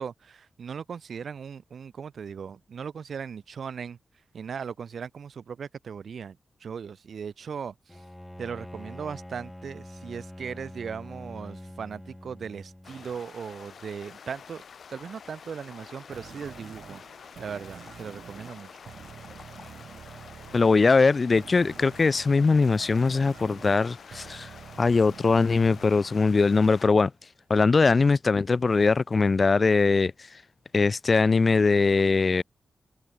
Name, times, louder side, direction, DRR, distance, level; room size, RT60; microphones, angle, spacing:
voice 1, 0.0-4.0 4.3-8.0 8.4-14.6 14.9-17.0 17.4-18.7, right 6 dB, 70° right, 3.0 m, -38 dB
Bowed string instrument, 7.9-13.2, left 1 dB, 10° left, 1.7 m, -44 dB
sound 1, 12.8-26.9, left 6 dB, 70° left, 1.1 m, -48 dB
sound 2, 16.1-26.9, right 7 dB, 90° right, 1.4 m, -48 dB
voice 2, 20.5-24.5 24.8-27.1 27.5-30.1 30.7-32.4, left 4 dB, 35° left, 0.3 m, -21 dB
wide cardioid pair, 160°, 0 cm